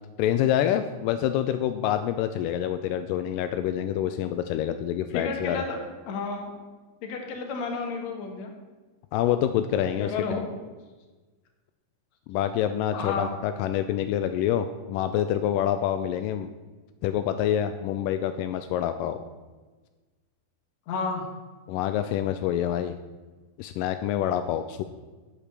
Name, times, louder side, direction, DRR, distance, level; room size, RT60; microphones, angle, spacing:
voice 1, 0.2-5.6 9.1-10.4 12.3-16.5 17.0-19.2 21.7-23.0 23.6-24.8, left 10 dB, 85° left, 9 dB, 1.9 m, -27 dB
voice 2, 5.1-5.8 6.1-6.5 7.0-8.5 10.0-10.5 12.9-13.3 20.9-21.3, left 4 dB, 60° left, 3 dB, 2.2 m, -31 dB
8.1 x 6.8 x 7.2 m, 1.3 s
omnidirectional pair, 4.4 m